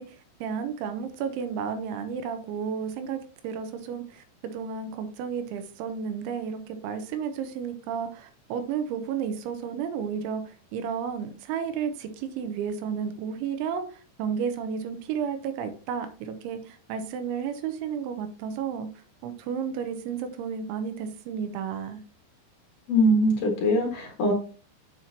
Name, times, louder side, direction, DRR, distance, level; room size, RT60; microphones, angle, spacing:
voice 1, 0.0-3.2 3.4-18.9 19.2-22.0, right 7 dB, 85° right, 8 dB, 3.0 m, -32 dB
voice 2, 22.9-24.3, equal, 80° left, 0 dB, 1.5 m, -22 dB
7.4 x 7.2 x 2.7 m, 0.39 s
omnidirectional pair, 5.5 m